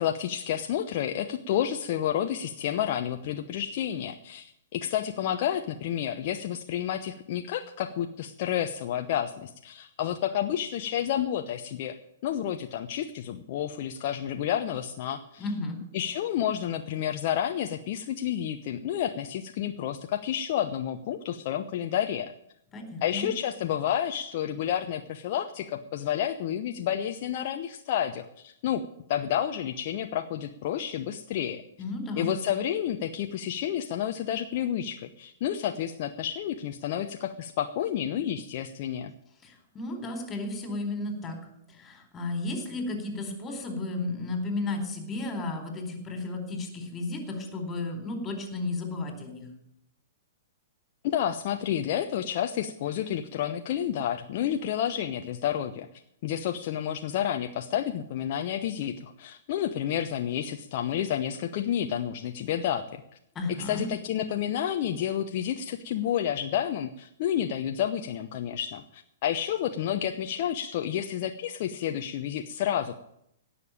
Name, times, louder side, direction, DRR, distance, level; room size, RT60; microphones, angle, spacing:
voice 1, 0.0-12.0 12.2-15.5 15.9-22.3 23.0-31.6 32.2-39.1 51.0-55.9 56.2-63.0 63.7-73.0, left 10 dB, 45° left, 5 dB, 0.9 m, -30 dB
voice 2, 15.4-15.8 22.7-23.3 31.8-32.3 39.4-41.4 41.8-49.5 63.3-63.9, left 2 dB, 15° left, 4 dB, 4.1 m, -33 dB
17.5 x 7.0 x 9.0 m, 0.76 s
figure-of-eight pair, 110°, 0 cm